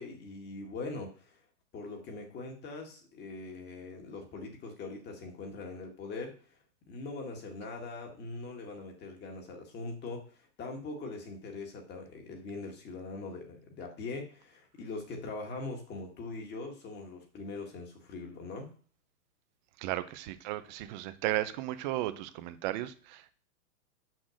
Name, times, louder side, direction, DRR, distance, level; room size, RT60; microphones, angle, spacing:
voice 1, 0.0-1.4 1.7-6.4 6.9-18.7, left 3 dB, 20° left, 2 dB, 1.8 m, -42 dB
voice 2, 19.8-23.3, right 15 dB, 30° right, 11 dB, 0.6 m, -35 dB
6.4 x 5.7 x 6.5 m, 0.43 s
hypercardioid pair, 145°, 46 cm